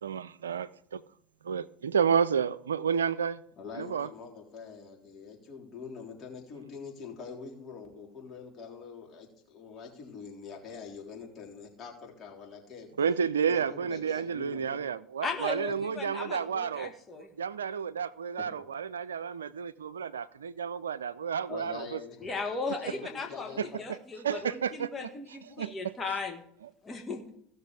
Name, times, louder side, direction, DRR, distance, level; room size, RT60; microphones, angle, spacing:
voice 1, 0.0-1.0 1.4-3.4 3.7-4.1 13.0-16.9 17.4-22.0 23.6-24.0 24.2-25.9, right 7 dB, 85° right, 0.4 m, -31 dB
voice 2, 3.6-12.9 13.5-14.8 15.7-15.8 21.5-23.8 24.3-24.4, left 5 dB, 40° left, 3.7 m, -45 dB
voice 3, 15.2-17.3 22.2-26.4 26.8-27.2, left 4 dB, 25° left, 1.7 m, -37 dB
16.5 x 6.6 x 3.4 m
hypercardioid pair, 75°, 0 cm